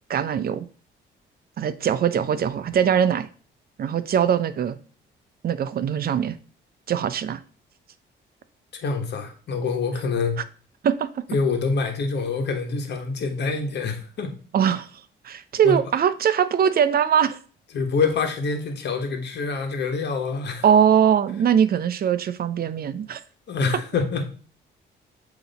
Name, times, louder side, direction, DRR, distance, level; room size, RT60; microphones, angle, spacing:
voice 1, 0.1-0.6 1.6-3.3 3.8-4.8 5.4-6.4 6.9-7.4 10.8-11.2 14.5-14.9 15.2-17.4 20.6-23.2, right 8 dB, 50° right, 0.6 m, -21 dB
voice 2, 8.7-10.4 11.3-14.3 15.6-15.8 17.7-20.6 23.5-24.2, left 4 dB, 60° left, 1.3 m, -26 dB
7.7 x 3.0 x 4.0 m
cardioid pair, 90°, 20 cm